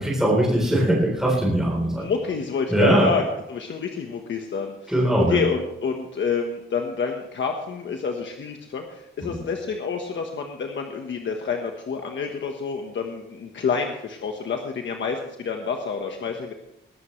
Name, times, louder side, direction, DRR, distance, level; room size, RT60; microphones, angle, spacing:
voice 1, 0.0-2.0 2.7-3.1 4.9-5.4 9.2-9.4, right 1 dB, ahead, -4 dB, 3.8 m, -20 dB
voice 2, 1.9-3.2 3.5-4.9 5.3-16.5, left 5 dB, 65° left, 3 dB, 1.3 m, -28 dB
21.0 x 12.0 x 3.2 m, 0.84 s
wide cardioid pair, 160°, 21 cm